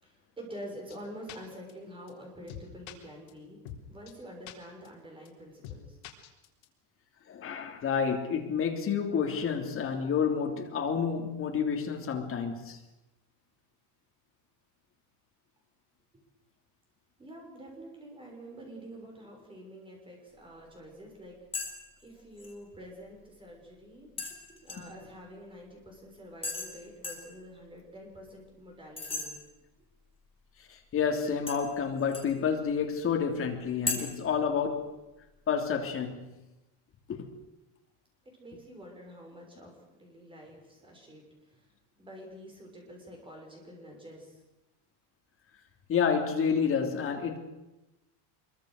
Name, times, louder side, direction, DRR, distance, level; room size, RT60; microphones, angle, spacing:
voice 1, 0.0-3.6 3.9-6.0 17.2-21.4 22.0-24.1 24.5-29.4 38.2-41.2 41.5-41.7 42.0-44.4, equal, 10° right, 6.5 m, -47 dB
sound 1, 0.9-1.0 1.3-1.4 1.7-1.8 2.1-2.2 2.5-2.9 3.3-3.4 3.7-3.8 4.1-4.2 4.5-4.6 4.9-5.0 5.3-5.4 5.6-5.8 6.0-6.7, left 12 dB, 70° left, 4.1 m, -43 dB
voice 2, 7.3-12.8 30.7-35.0 35.5-36.2 37.1-37.3 45.9-47.4, left 6 dB, 25° left, 3.2 m, -29 dB
sound 2, 21.5-21.7 22.0-22.5 24.2-25.0 26.4-26.7 27.0-27.3 29.0-29.3 31.5-32.3 33.9-34.0, left 3 dB, 10° left, 4.5 m, -35 dB
25.0 x 23.5 x 6.6 m
cardioid pair, 175°, 47 cm